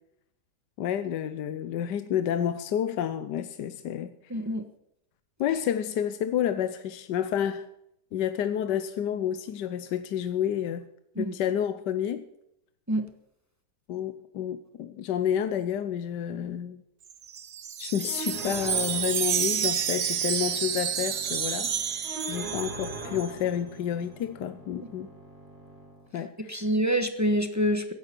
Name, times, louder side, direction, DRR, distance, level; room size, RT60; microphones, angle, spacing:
voice 1, 0.8-4.1 5.4-7.7 8.1-10.9 11.2-12.2 13.9-16.8 17.8-25.1 26.1-26.6, left 9 dB, 85° left, 1.4 m, -30 dB
voice 2, 4.3-4.6 11.1-11.4 12.9-13.1 26.5-27.9, equal, 10° right, 0.9 m, -26 dB
Wind chime, 17.1-23.3, right 8 dB, 55° right, 0.6 m, -30 dB
sound 1, 18.1-26.1, right 2 dB, 35° right, 3.8 m, -42 dB
15.5 x 11.0 x 6.0 m
omnidirectional pair, 1.8 m